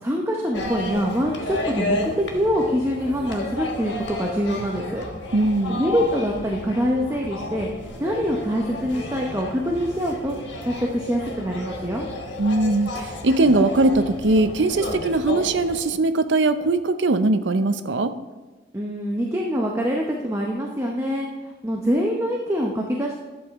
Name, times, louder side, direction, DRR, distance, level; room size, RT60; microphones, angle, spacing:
voice 1, 0.0-5.0 5.7-7.7 8.0-10.3 10.7-12.1 18.7-21.3 21.6-23.1, equal, 15° right, -1 dB, 0.8 m, -24 dB
sound 1, 0.5-15.8, left 1 dB, 65° left, 1.3 m, -32 dB
voice 2, 5.3-5.8 12.4-18.1, right 2 dB, 70° right, 10 dB, 0.6 m, -20 dB
11.5 x 7.9 x 3.6 m, 1.3 s
head